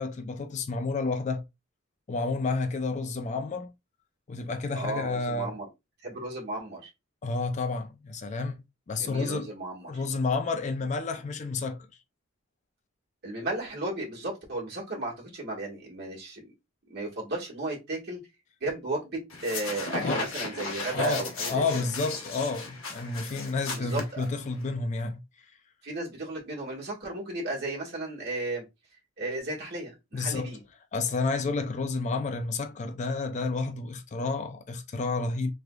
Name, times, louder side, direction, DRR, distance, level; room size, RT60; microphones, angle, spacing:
voice 1, 0.0-1.4 2.1-3.7 4.3-5.5 7.2-9.5 9.8-11.9 20.0-20.3 20.9-25.2 30.1-30.5 30.9-35.5, left 3 dB, 35° left, 0.4 m, -30 dB
voice 2, 4.7-5.7 6.0-6.9 9.0-9.9 13.2-16.5 16.9-18.2 18.6-21.6 23.7-24.2 25.8-28.6 29.2-30.6, right 2 dB, 55° right, 1.5 m, -34 dB
sound 1, 19.3-24.7, left 3 dB, 75° left, 1.1 m, -35 dB
3.5 x 3.3 x 2.2 m
head